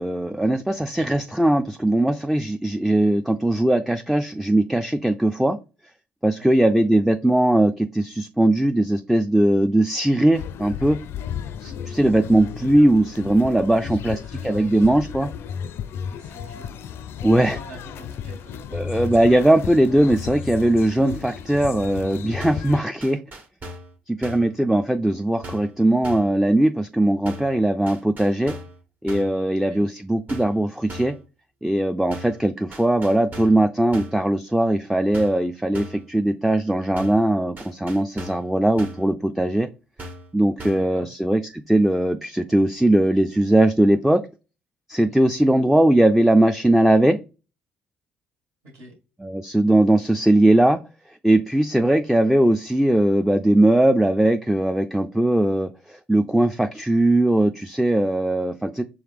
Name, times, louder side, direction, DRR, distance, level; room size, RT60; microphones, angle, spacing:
voice 1, 0.0-5.6 6.2-11.0 11.6-14.2 14.4-15.3 17.2-17.6 18.7-23.2 24.1-28.5 29.0-31.1 31.6-39.7 40.3-44.2 44.9-47.2 49.2-50.8 51.2-58.8, right 1 dB, 5° right, 7 dB, 0.4 m, -19 dB
voice 2, 6.4-6.9 13.8-14.9 16.0-16.8 17.3-18.9 29.7-29.9 40.6-41.1 45.1-45.3 48.6-48.9, right 1 dB, 75° right, -1 dB, 2.0 m, -45 dB
sound 1, 10.3-22.8, left 8 dB, 65° left, 0.4 m, -34 dB
sound 2, 22.4-22.7 23.0-23.9 24.2-24.5 25.4-25.8 26.0-26.4 27.3-27.6 27.9-28.8 29.1-29.4 30.3-30.6 30.9-31.2 32.1-32.4 32.7-33.6 33.9-34.2 35.1-35.5 35.7-36.1 37.0-37.3 37.6-38.5 38.8-39.1 40.0-40.3 40.6-40.9, equal, 45° right, 1.5 m, -38 dB
4.7 x 3.1 x 3.5 m, 0.31 s
hypercardioid pair, 55°, 4 cm